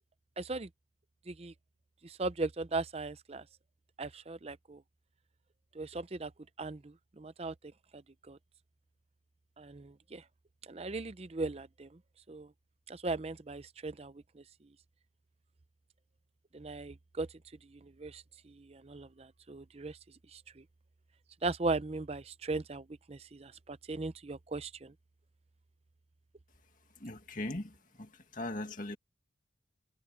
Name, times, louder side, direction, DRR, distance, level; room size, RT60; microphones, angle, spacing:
voice 1, 0.4-0.7 1.3-1.5 2.0-3.4 4.0-4.8 5.7-6.3 6.6-8.0 8.3-8.4 9.6-10.2 10.6-12.0 12.3-12.5 12.9-14.4 16.5-17.3 17.6-20.0 20.3-20.6 21.4-24.9, right 3 dB, 30° right, 0.6 m, -38 dB
voice 2, 27.0-27.7 28.0-29.0, left 1 dB, 45° left, 2.0 m, -39 dB
head